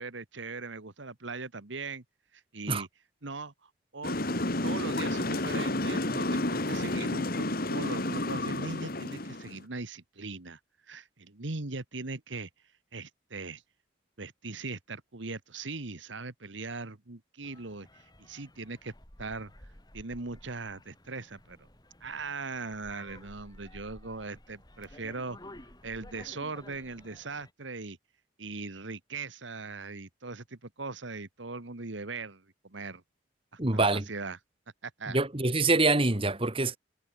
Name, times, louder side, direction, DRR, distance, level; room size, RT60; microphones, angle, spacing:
voice 1, 0.0-2.0 2.3-2.9 3.2-10.6 10.9-12.5 12.9-13.6 14.2-18.9 19.2-19.5 19.9-21.6 22.0-25.4 25.8-28.0 28.4-33.0 33.5-34.4 34.8-35.2, right 3 dB, 75° right, 1.6 m, -40 dB
sound 1, 4.0-9.6, left 1 dB, 50° left, 2.7 m, -31 dB
sound 2, 17.4-27.5, left 1 dB, 20° left, 4.4 m, -53 dB
voice 2, 33.6-34.0 35.1-36.8, right 2 dB, 30° right, 1.8 m, -25 dB
head